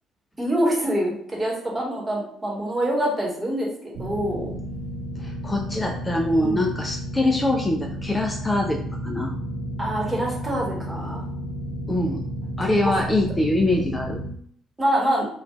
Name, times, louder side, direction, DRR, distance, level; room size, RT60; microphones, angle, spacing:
voice 1, 0.4-4.5 6.3-6.6 9.8-11.2 12.6-12.9 14.8-15.3, right 1 dB, 20° right, -2 dB, 1.1 m, -25 dB
sound 1, 3.9-14.3, right 1 dB, 60° right, 0.5 m, -32 dB
voice 2, 5.2-9.3 11.9-12.3 12.6-14.2, left 1 dB, 20° left, 2 dB, 0.4 m, -24 dB
3.1 x 2.5 x 2.3 m, 0.63 s
figure-of-eight pair, 45°, 0 cm